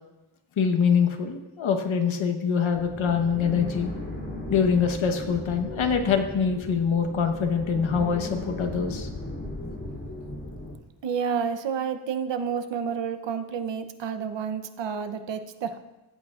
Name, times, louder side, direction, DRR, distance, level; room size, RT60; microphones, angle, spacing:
voice 1, 0.6-3.9 4.5-9.1, left 6 dB, 75° left, 5 dB, 1.2 m, -24 dB
sound 1, 2.7-10.7, left 1 dB, 25° left, 3.3 m, -37 dB
voice 2, 11.0-15.8, right 7 dB, 65° right, 8 dB, 0.8 m, -30 dB
15.5 x 8.5 x 2.5 m, 1.0 s
wide cardioid pair, 120°, 48 cm